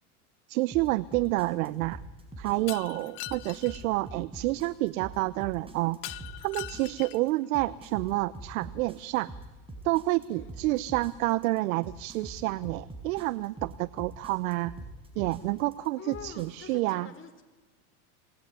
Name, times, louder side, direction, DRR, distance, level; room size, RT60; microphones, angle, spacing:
voice 1, 0.5-2.0 2.4-9.3 9.8-14.8 15.2-17.1, right 19 dB, 65° right, 18 dB, 0.8 m, -29 dB
sound 1, 0.7-16.5, right 2 dB, 10° right, 5.4 m, -44 dB
Shatter, 2.7-3.8 6.0-7.3, left 19 dB, 45° left, 1.0 m, -41 dB
voice 2, 16.0-17.4, left 7 dB, 25° left, 7 dB, 3.9 m, -46 dB
27.5 x 20.0 x 9.5 m, 1.2 s
supercardioid pair, 115°, 44 cm